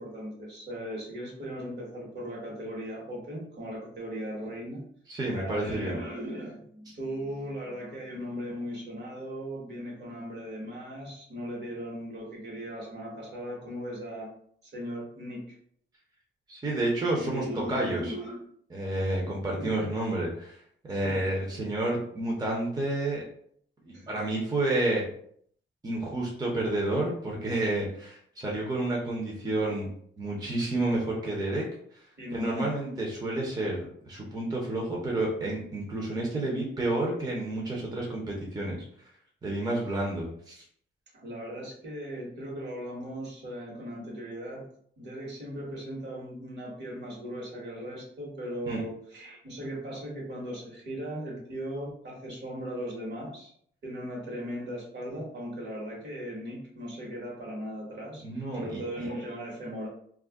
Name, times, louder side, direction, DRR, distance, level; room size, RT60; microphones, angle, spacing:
voice 1, 0.0-4.8 5.3-14.3 14.7-15.4 17.2-18.4 19.6-20.1 21.0-21.2 23.9-24.1 32.2-32.7 41.1-44.7 45.0-53.5 53.8-59.9, equal, 60° right, -3 dB, 1.1 m, -38 dB
voice 2, 5.1-6.0 16.5-18.1 18.7-20.6 20.9-23.2 23.8-25.1 25.8-29.9 30.2-31.6 31.9-32.0 32.3-38.8 39.4-40.6 48.7-48.8 58.2-59.1, right 2 dB, 20° right, -3 dB, 0.6 m, -30 dB
2.3 x 2.1 x 3.4 m, 0.63 s
wide cardioid pair, 135°, 21 cm